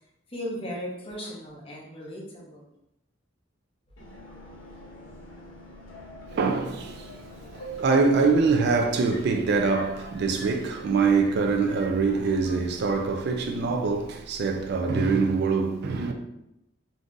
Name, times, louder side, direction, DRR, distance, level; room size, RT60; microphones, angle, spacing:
voice 1, 0.3-2.7 13.6-13.7, equal, 30° left, 0.7 m, -37 dB
Subway metro underground, 4.0-14.7, right 1 dB, 70° left, 0.7 m, -44 dB
voice 2, 6.3-7.1 7.5-16.1, right 4 dB, 55° right, 0.3 m, -24 dB
2.6 x 2.4 x 3.7 m
head